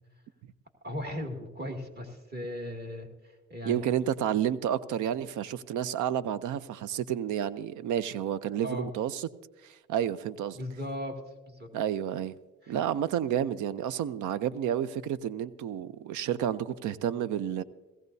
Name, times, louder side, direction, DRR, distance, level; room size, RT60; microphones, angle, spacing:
voice 1, 0.8-3.1 3.5-3.8 8.6-8.9 10.5-11.1 11.5-11.7 12.6-12.8, left 1 dB, 35° right, 2.3 m, -37 dB
voice 2, 3.7-9.3 9.6-10.6 11.7-12.4 12.7-17.6, right 10 dB, 85° right, 0.6 m, -30 dB
17.5 x 15.5 x 2.7 m
cardioid pair, 90°, 30 cm